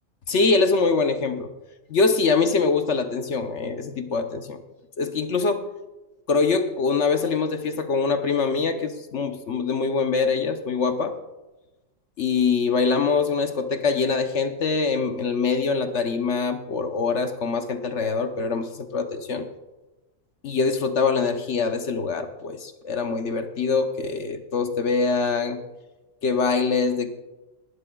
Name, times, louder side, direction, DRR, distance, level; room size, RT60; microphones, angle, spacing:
voice 1, 0.3-1.5 1.9-4.6 5.0-5.7 6.3-11.1 12.2-19.5 20.4-25.6 26.2-27.1, left 4 dB, 55° left, 7 dB, 1.0 m, -24 dB
20.5 x 11.5 x 2.3 m, 1.1 s
omnidirectional pair, 1.6 m